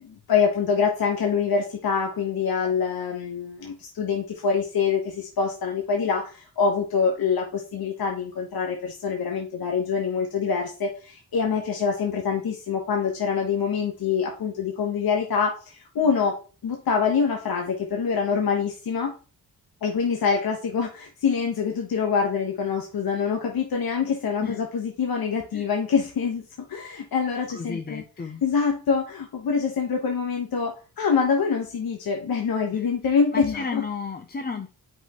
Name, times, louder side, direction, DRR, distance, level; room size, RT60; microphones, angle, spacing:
voice 1, 0.1-16.4 16.6-19.1 19.8-26.4 26.7-28.0 28.4-33.8, left 6 dB, 70° left, 1.3 m, -25 dB
voice 2, 27.5-28.4 32.7-34.7, left 5 dB, 25° left, 0.5 m, -33 dB
8.2 x 5.4 x 3.0 m
cardioid pair, 105°, 38 cm